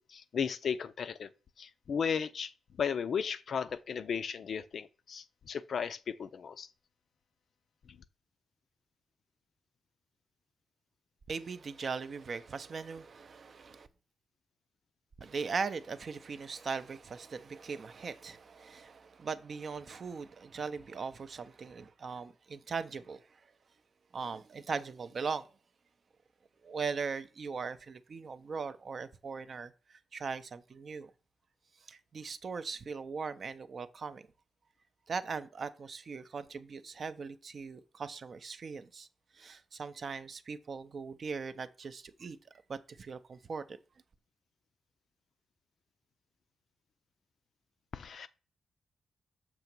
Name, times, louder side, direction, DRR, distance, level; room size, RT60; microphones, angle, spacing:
voice 1, 0.1-1.3 1.6-2.5 2.8-6.7 47.9-48.3, left 7 dB, 55° left, 0.4 m, -35 dB
voice 2, 11.3-13.9 15.2-23.3 24.1-25.5 26.6-31.1 31.9-34.3 35.1-39.1 39.3-42.4 42.7-43.8, right 5 dB, 40° right, 0.4 m, -39 dB
6.8 x 2.9 x 5.9 m
wide cardioid pair, 165°, 0 cm